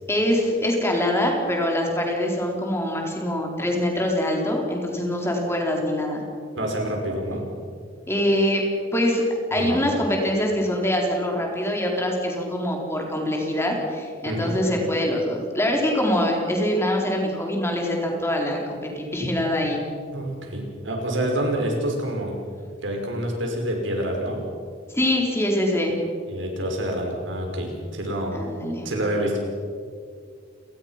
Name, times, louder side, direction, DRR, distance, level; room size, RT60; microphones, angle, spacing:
voice 1, 0.1-6.2 8.1-8.6 8.9-9.2 9.5-19.8 24.9-26.0 28.3-28.9, left 1 dB, 15° left, 0 dB, 4.2 m, -24 dB
voice 2, 6.5-7.5 9.5-9.8 14.2-14.6 20.1-22.4 22.8-24.4 26.3-28.3 28.8-29.4, right 1 dB, 75° right, 1 dB, 5.8 m, -27 dB
29.5 x 19.5 x 6.0 m, 2.1 s
head